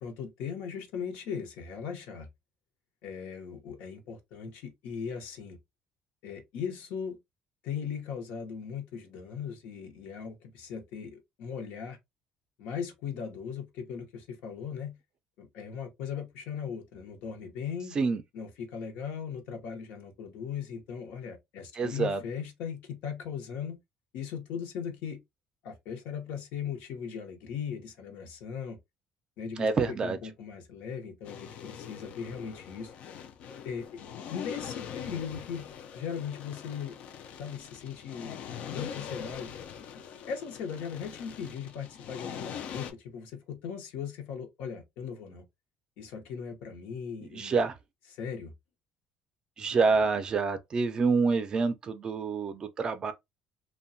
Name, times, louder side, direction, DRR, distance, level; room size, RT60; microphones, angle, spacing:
voice 1, 0.0-2.3 3.0-5.6 6.2-7.2 7.6-12.0 12.6-15.0 15.4-18.0 18.3-23.8 24.1-25.2 25.6-28.8 29.4-32.9 33.6-33.9 34.3-35.7 35.9-37.0 37.4-38.4 38.7-39.5 40.3-45.4 46.0-47.6 48.1-48.5, left 7 dB, 80° left, 0.7 m, -38 dB
voice 2, 21.8-22.2 29.6-30.2 47.3-47.8 49.6-53.1, right 4 dB, 30° right, 0.4 m, -27 dB
sound 1, 31.2-42.9, left 8 dB, 55° left, 0.4 m, -42 dB
2.6 x 2.2 x 2.6 m
cardioid pair, 145°, 3 cm